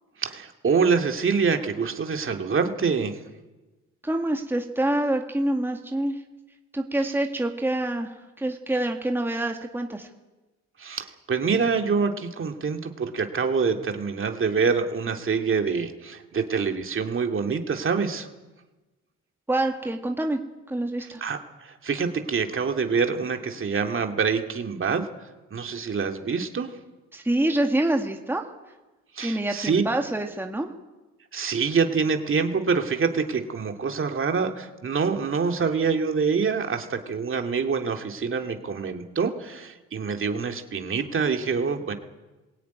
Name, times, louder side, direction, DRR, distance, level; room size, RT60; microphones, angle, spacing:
voice 1, 0.2-3.2 10.8-18.3 21.0-25.1 25.5-26.7 29.1-29.8 31.3-41.9, right 5 dB, 45° right, 5 dB, 2.4 m, -26 dB
voice 2, 4.0-6.2 6.7-8.1 8.4-10.1 19.5-20.4 20.7-21.2 27.1-28.5 29.2-30.7, right 1 dB, 5° right, 3 dB, 2.0 m, -26 dB
22.5 x 16.5 x 9.5 m, 1.2 s
cardioid pair, 90°, 30 cm